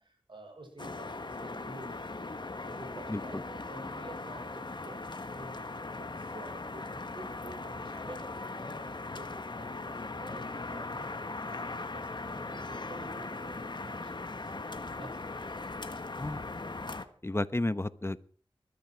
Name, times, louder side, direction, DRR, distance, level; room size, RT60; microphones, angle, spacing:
voice 1, 0.0-15.6 15.9-16.1, right 2 dB, 60° right, 4 dB, 6.1 m, -50 dB
sound 1, 0.8-17.1, left 3 dB, 55° left, 1.5 m, -39 dB
voice 2, 3.1-3.4 16.2-16.4 17.2-18.2, left 2 dB, 25° left, 14 dB, 1.0 m, -32 dB
20.5 x 13.5 x 4.7 m, 0.42 s
cardioid pair, 40°, 9 cm